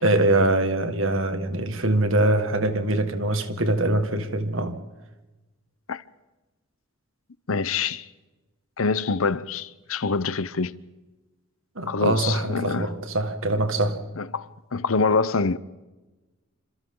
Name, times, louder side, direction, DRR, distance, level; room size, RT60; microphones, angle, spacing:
voice 1, 0.0-4.8 11.8-14.0, right 1 dB, 65° right, 2.0 m, -23 dB
voice 2, 7.5-8.1 8.8-10.8 11.9-12.9 14.2-15.6, left 4 dB, 75° left, 0.8 m, -25 dB
27.5 x 27.0 x 3.9 m
head